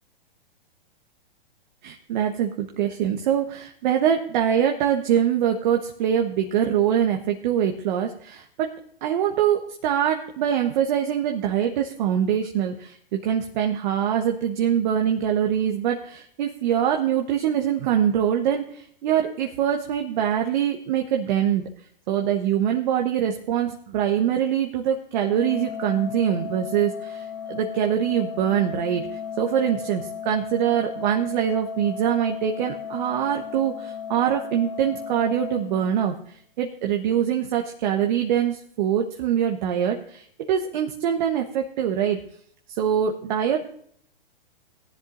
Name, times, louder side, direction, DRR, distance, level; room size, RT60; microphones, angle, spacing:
voice 1, 1.8-8.7 9.0-21.6 22.1-42.2 42.7-43.6, right 9 dB, 50° right, 3 dB, 1.2 m, -24 dB
Organ, 25.3-36.3, left 8 dB, 60° left, 1.9 m, -35 dB
18.5 x 10.5 x 2.6 m, 0.62 s
hypercardioid pair, 120°, 29 cm